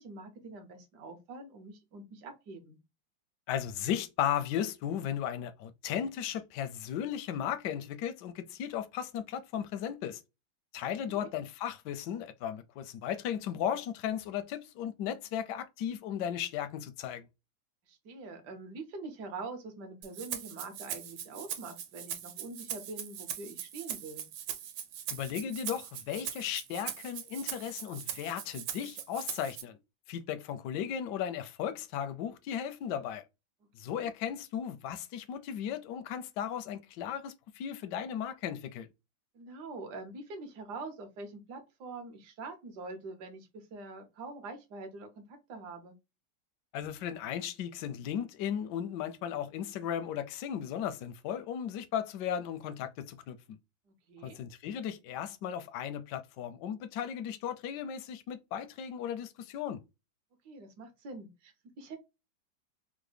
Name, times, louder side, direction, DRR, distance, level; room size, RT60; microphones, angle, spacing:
voice 1, 0.0-2.8 11.0-11.3 17.9-24.3 33.8-34.1 39.3-46.0 53.9-54.4 60.4-62.0, right 3 dB, 65° right, 1.3 m, -45 dB
voice 2, 3.5-10.2 10.7-17.3 25.1-29.8 30.1-33.2 33.8-38.9 46.7-53.6 54.2-59.8, left 9 dB, 75° left, 1.0 m, -36 dB
Rattle (instrument), 20.0-29.6, right 10 dB, 85° right, 1.5 m, -40 dB
3.7 x 2.1 x 3.2 m
omnidirectional pair, 2.2 m